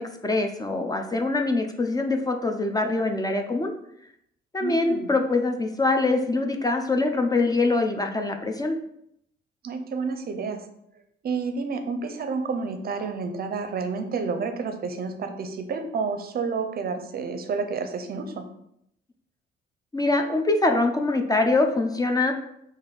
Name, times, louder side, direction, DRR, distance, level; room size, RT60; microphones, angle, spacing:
voice 1, 0.0-3.7 4.5-8.8 19.9-22.3, left 2 dB, 20° left, 4 dB, 0.4 m, -24 dB
voice 2, 4.6-5.1 9.6-10.7 11.2-18.5, right 4 dB, 50° right, 7 dB, 0.5 m, -30 dB
4.0 x 2.5 x 3.3 m, 0.75 s
cardioid pair, 90°, 20 cm